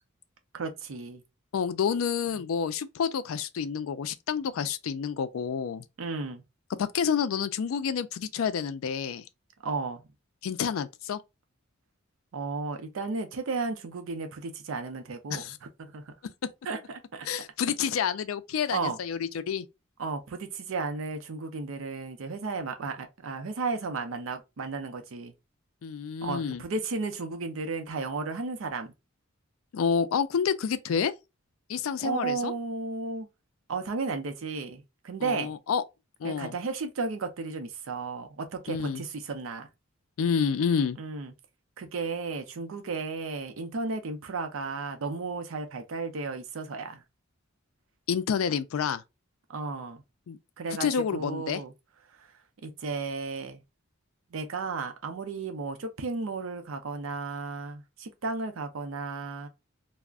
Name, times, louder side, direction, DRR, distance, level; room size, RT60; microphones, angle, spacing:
voice 1, 0.5-1.2 6.0-6.4 9.6-10.0 12.3-16.1 16.6-17.3 18.7-19.0 20.0-25.3 26.2-28.9 32.0-33.3 33.7-35.5 36.2-39.7 41.0-41.3 41.8-47.0 49.5-50.0 50.6-51.7 52.2-52.3 52.6-53.6 54.3-59.5, right 4 dB, 70° right, 0.5 m, -34 dB
voice 2, 1.5-5.8 6.8-9.2 10.4-11.2 15.3-15.6 17.3-19.7 25.8-26.6 29.7-31.1 31.7-32.5 35.2-35.8 36.2-36.5 38.7-39.0 40.2-41.0 48.1-49.0 50.3-50.4 50.8-51.6, left 7 dB, 75° left, 0.4 m, -29 dB
2.4 x 2.0 x 3.4 m
head